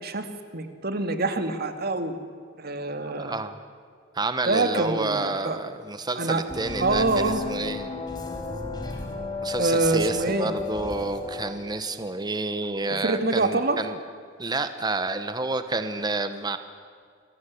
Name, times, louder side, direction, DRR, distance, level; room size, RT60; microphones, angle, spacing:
voice 1, 0.5-2.2 2.6-3.4 4.5-5.6 6.2-6.4 6.8-7.4 9.6-10.5 12.9-13.8, right 2 dB, 55° right, 8 dB, 2.3 m, -25 dB
voice 2, 3.0-3.6 4.1-7.9 9.4-14.0 14.4-16.6, right 3 dB, 20° right, 10 dB, 1.1 m, -29 dB
sound 1, 6.5-11.5, left 4 dB, 20° left, 3.9 m, -33 dB
27.5 x 21.0 x 8.5 m, 2.2 s
head